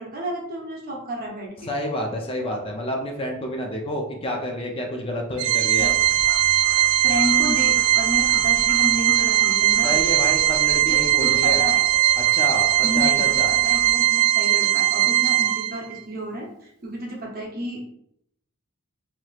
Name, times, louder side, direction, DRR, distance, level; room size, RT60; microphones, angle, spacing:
voice 1, 0.0-1.7 5.8-6.0 7.0-10.0 10.9-11.8 12.8-17.9, right 1 dB, 40° right, -2 dB, 0.8 m, -31 dB
voice 2, 1.7-5.9 9.8-11.7 12.2-13.5, equal, 25° left, 1 dB, 0.4 m, -29 dB
Organ, 5.4-16.0, right 13 dB, 85° right, 0.3 m, -20 dB
sound 1, 5.7-13.9, left 1 dB, 70° left, 0.7 m, -41 dB
3.1 x 2.9 x 2.3 m, 0.73 s
head